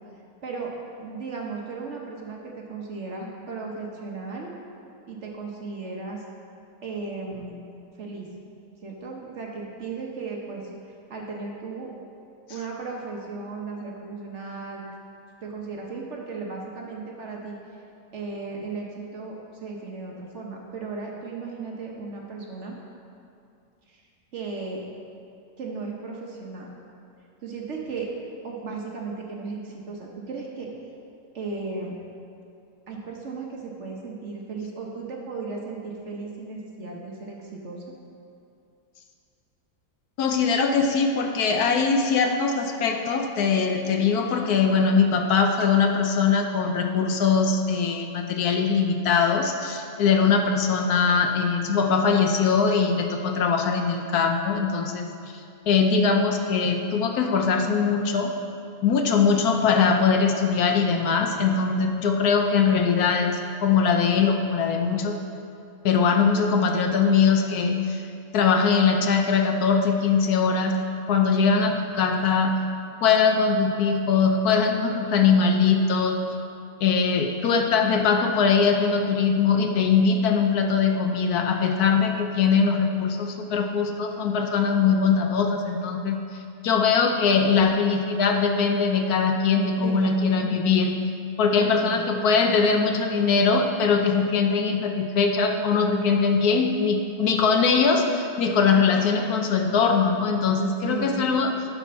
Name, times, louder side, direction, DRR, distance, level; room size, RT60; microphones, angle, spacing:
voice 1, 0.4-0.7 1.0-4.5 5.1-6.2 6.8-7.6 8.0-8.3 8.8-10.6 11.1-11.9 12.5-14.8 15.4-17.6 18.1-22.8 23.9-24.0 24.3-24.8 25.6-26.7 27.4-28.1 28.4-30.7 31.3-32.0 32.9-37.8 89.8-90.6 91.6-92.0 100.8-101.3, right 4 dB, 50° right, -1 dB, 1.1 m, -35 dB
voice 2, 40.2-55.1 55.7-58.3 58.8-65.2 65.8-68.0 68.3-70.8 71.1-72.6 73.0-76.2 76.8-86.2 86.6-90.9 91.4-101.5, left 5 dB, 70° left, 4 dB, 1.1 m, -21 dB
11.5 x 4.3 x 5.6 m, 2.6 s
omnidirectional pair, 1.8 m